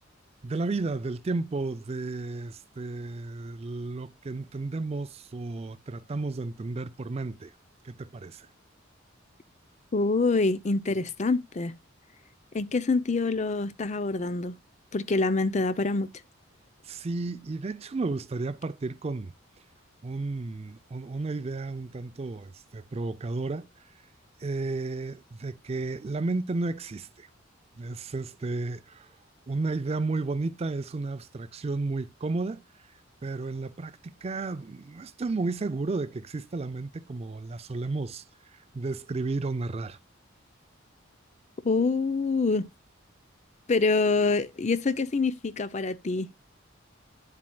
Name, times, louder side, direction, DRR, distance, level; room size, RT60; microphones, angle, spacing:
voice 1, 0.4-7.5 7.8-8.5 16.8-19.3 20.0-23.7 24.4-27.3 27.8-29.2 29.5-32.9 33.2-40.0, right 3 dB, 30° right, 0.4 m, -33 dB
voice 2, 9.9-11.7 12.5-14.6 14.9-16.1 41.6-42.7 43.7-46.4, left 3 dB, 35° left, 0.5 m, -26 dB
9.8 x 7.4 x 2.3 m
head